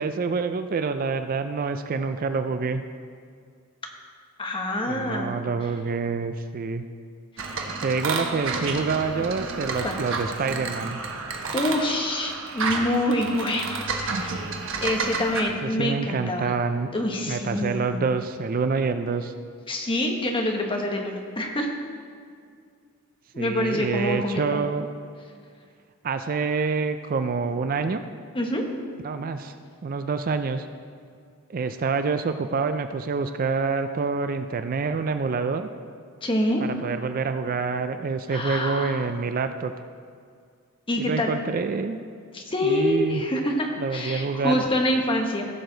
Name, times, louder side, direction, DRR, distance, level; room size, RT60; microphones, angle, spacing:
voice 1, 0.0-2.8 4.9-6.9 7.6-11.0 15.6-16.9 17.3-19.3 23.4-24.9 26.0-28.0 29.0-29.5 29.8-30.7 31.5-35.7 36.6-39.7 41.0-42.0 42.6-43.2 43.8-44.6, right 4 dB, 40° right, 9 dB, 0.4 m, -27 dB
voice 2, 4.4-5.3 9.8-10.0 11.5-14.4 14.8-16.5 16.9-18.0 19.7-21.7 23.3-24.6 28.3-28.6 36.2-36.6 38.3-39.1 40.9-41.3 42.3-45.5, left 1 dB, 25° left, 2 dB, 1.1 m, -26 dB
sound 1, 7.4-15.4, right 4 dB, 60° right, 1.1 m, -30 dB
16.0 x 6.7 x 3.9 m, 2.2 s
head